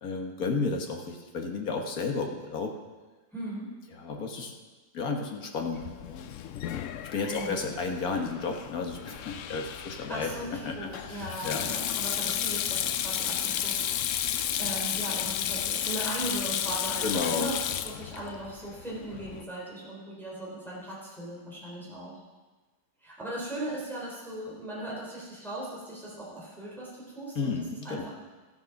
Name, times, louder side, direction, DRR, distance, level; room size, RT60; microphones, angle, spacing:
voice 1, 0.0-2.8 3.9-4.6 4.9-6.3 7.0-11.8 17.0-17.5 27.3-28.1, left 4 dB, 55° left, 3 dB, 1.8 m, -32 dB
voice 2, 3.3-3.7 7.3-7.6 9.8-10.5 10.8-22.2 23.0-27.5 27.8-28.1, right 1 dB, ahead, -6 dB, 3.6 m, -38 dB
Sink (filling or washing), 5.7-19.4, left 10 dB, 75° left, 0.7 m, -33 dB
14.0 x 8.7 x 5.9 m, 1.3 s
omnidirectional pair, 1.9 m